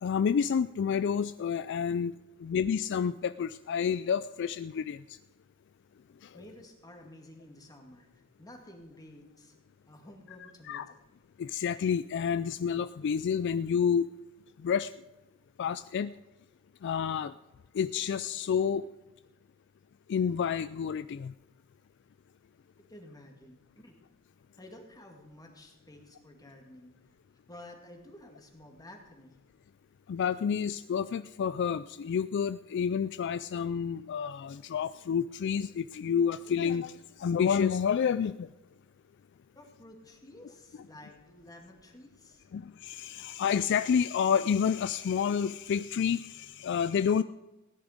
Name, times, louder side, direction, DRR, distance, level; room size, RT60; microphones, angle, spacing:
voice 1, 0.0-2.1 2.4-5.2 6.2-6.4 10.7-10.8 11.4-14.1 14.6-14.9 15.6-16.1 16.8-17.3 17.7-18.9 20.1-21.3 30.1-38.5 42.5-47.2, left 7 dB, 55° left, 13 dB, 0.3 m, -29 dB
voice 2, 6.3-9.5 9.9-11.0 22.9-23.9 24.6-26.9 27.5-29.4 39.6-42.5, left 1 dB, 20° left, 2 dB, 2.2 m, -52 dB
16.5 x 10.5 x 5.1 m, 1.1 s
head